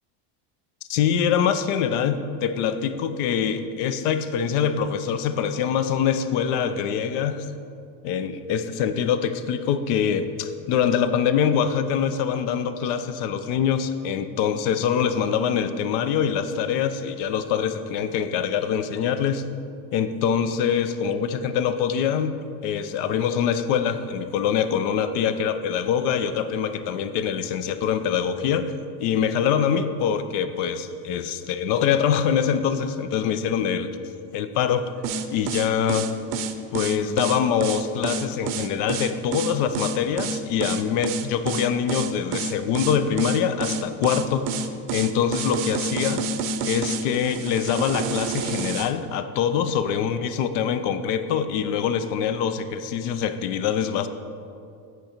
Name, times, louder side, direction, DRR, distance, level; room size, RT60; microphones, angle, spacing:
voice 1, 0.9-7.5 8.0-19.4 19.9-22.4 22.6-28.7 29.0-33.9 34.3-34.8 35.3-36.1 36.7-44.4 44.9-46.2 46.6-54.1, left 8 dB, 75° left, 10 dB, 0.6 m, -24 dB
sound 1, 35.0-48.9, right 4 dB, 45° right, 0.6 m, -28 dB
8.2 x 5.1 x 4.4 m, 2.5 s
supercardioid pair, 105°, 46 cm